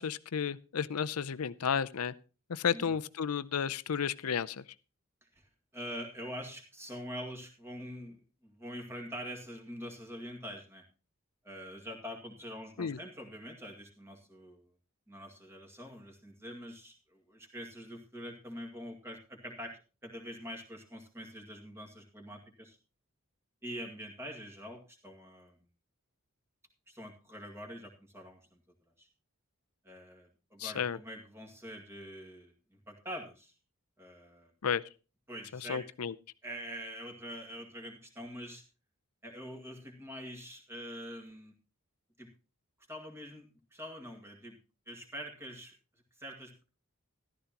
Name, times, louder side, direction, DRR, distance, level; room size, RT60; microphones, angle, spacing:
voice 1, 0.0-2.1 2.5-4.6 12.8-13.0 30.6-31.0 34.6-34.8 35.7-36.1, left 7 dB, 90° left, 15 dB, 0.6 m, -32 dB
voice 2, 5.2-10.8 11.4-14.7 15.1-22.8 23.6-25.6 26.9-28.6 29.0-29.1 29.8-33.5 34.0-34.5 35.3-35.8 36.4-38.6 39.2-41.5 42.2-42.3 42.9-44.6 44.9-45.7 46.2-46.6, equal, 10° right, 1 dB, 2.1 m, -45 dB
14.0 x 12.5 x 2.9 m, 0.33 s
head